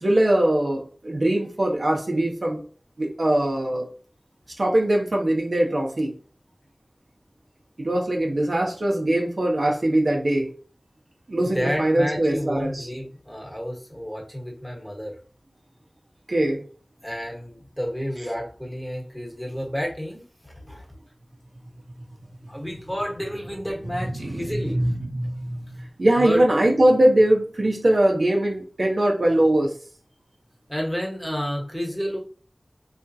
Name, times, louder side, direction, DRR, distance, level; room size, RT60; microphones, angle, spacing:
voice 1, 0.0-2.6 3.0-3.9 4.6-6.1 7.8-10.5 11.3-12.9 16.3-16.6 24.1-24.2 24.7-29.7, right 1 dB, 70° right, 0 dB, 0.8 m, -21 dB
voice 2, 11.5-15.2 17.0-20.9 22.5-24.8 26.1-26.4 30.7-32.2, equal, 5° left, -1 dB, 1.2 m, -30 dB
3.5 x 2.5 x 2.7 m, 0.40 s
wide cardioid pair, 50°, 0 cm